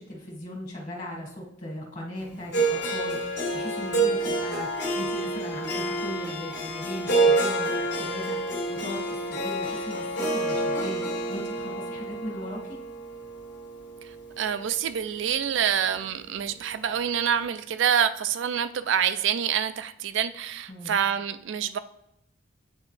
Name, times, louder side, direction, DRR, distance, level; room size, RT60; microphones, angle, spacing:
voice 1, 0.0-12.8 20.7-21.0, left 1 dB, 40° left, -3 dB, 1.7 m, -38 dB
Harp, 2.5-14.7, right 2 dB, 60° left, 1.5 m, -28 dB
voice 2, 14.0-21.8, right 8 dB, 65° right, 12 dB, 0.4 m, -27 dB
8.7 x 3.4 x 3.2 m, 0.81 s
head